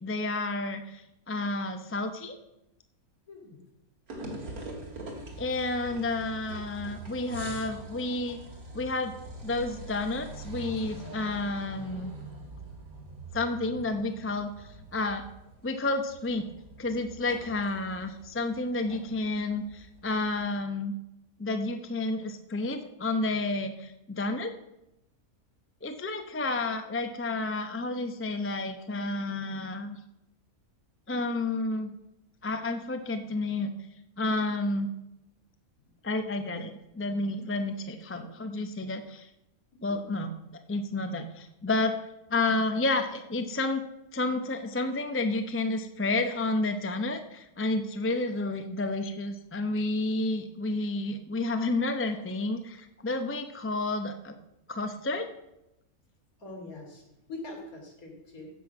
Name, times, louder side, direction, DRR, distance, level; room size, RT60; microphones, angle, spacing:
voice 1, 0.0-2.4 5.4-8.4 8.7-9.1 9.4-12.1 13.3-15.3 15.6-16.4 16.8-20.9 21.4-24.5 25.8-30.0 31.1-31.9 32.4-33.7 34.2-34.9 36.0-39.3 39.8-40.3 40.7-41.9 42.3-43.8 44.1-54.3 54.7-55.3, left 2 dB, 15° left, 7 dB, 0.5 m, -30 dB
voice 2, 3.3-3.6 56.4-57.0 57.3-58.5, left 2 dB, 75° left, 0 dB, 3.3 m, -42 dB
sound 1, 4.1-20.5, right 2 dB, 85° right, 2.7 m, -44 dB
15.5 x 6.0 x 6.0 m, 0.88 s
omnidirectional pair, 1.5 m